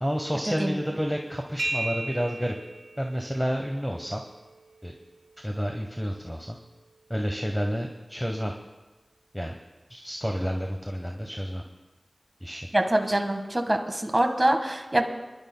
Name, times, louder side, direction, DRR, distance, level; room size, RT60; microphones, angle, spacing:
voice 1, 0.0-2.5 3.0-4.2 4.8-4.9 5.4-6.6 7.1-8.5 9.3-9.6 9.9-11.6 12.4-12.7, equal, 5° left, 2 dB, 1.0 m, -30 dB
sound 1, 1.6-9.1, right 2 dB, 70° right, 1.6 m, -40 dB
voice 2, 12.7-15.3, right 1 dB, 30° right, 4 dB, 1.5 m, -25 dB
27.5 x 11.5 x 2.2 m, 1.2 s
wide cardioid pair, 45°, 0 cm